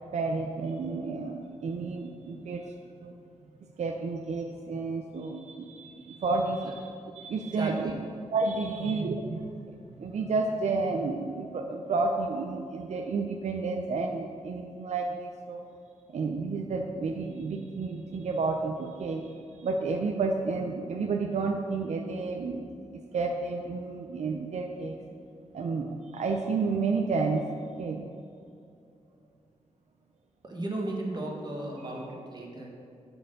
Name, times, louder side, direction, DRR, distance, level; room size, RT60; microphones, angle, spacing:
voice 1, 0.1-2.7 3.0-3.1 3.8-7.9 8.3-9.5 10.0-15.6 16.1-25.0 25.5-28.0 31.8-31.9, right 3 dB, 70° right, 3 dB, 0.5 m, -31 dB
voice 2, 7.6-8.0 8.7-8.8 30.4-32.7, right 1 dB, 35° right, -1 dB, 1.5 m, -35 dB
7.9 x 4.4 x 6.5 m, 2.4 s
wide cardioid pair, 95°, 12 cm